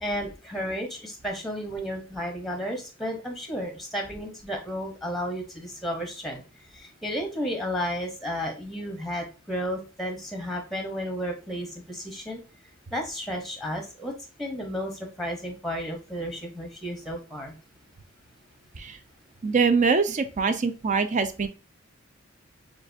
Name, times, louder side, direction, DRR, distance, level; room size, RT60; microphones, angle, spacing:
voice 1, 0.0-6.4 6.7-12.4 12.9-14.1 14.4-17.5, equal, ahead, 3 dB, 0.8 m, -32 dB
voice 2, 19.4-21.5, right 5 dB, 35° right, 9 dB, 0.4 m, -23 dB
6.6 x 2.4 x 2.6 m, 0.33 s
head